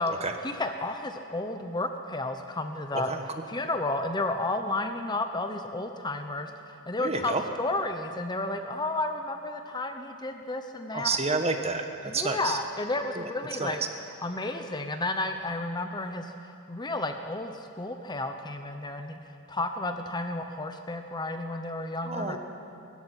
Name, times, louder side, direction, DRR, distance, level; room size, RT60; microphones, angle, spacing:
voice 1, 0.4-6.5 6.9-11.2 12.0-13.8 14.2-19.2 19.5-22.4, left 2 dB, 20° left, 6 dB, 0.8 m, -32 dB
voice 2, 7.0-7.4 10.9-12.6 13.2-13.3 13.6-13.7 22.1-22.4, right 3 dB, 30° right, 6 dB, 1.4 m, -29 dB
20.0 x 14.5 x 9.9 m, 2.7 s
head